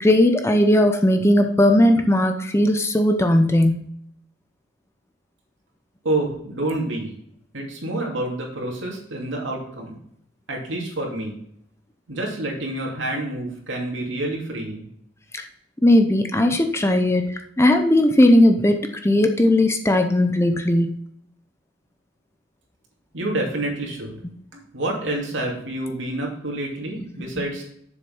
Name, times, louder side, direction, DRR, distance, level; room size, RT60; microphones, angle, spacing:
voice 1, 0.0-3.9 15.3-15.4 15.8-21.0 27.4-27.5, left 1 dB, 15° left, 5 dB, 0.7 m, -18 dB
voice 2, 6.0-7.1 7.5-10.0 10.5-11.3 12.1-14.9 23.1-24.2 24.5-27.6, right 1 dB, 70° right, 0 dB, 2.7 m, -28 dB
7.2 x 6.9 x 5.6 m, 0.69 s
head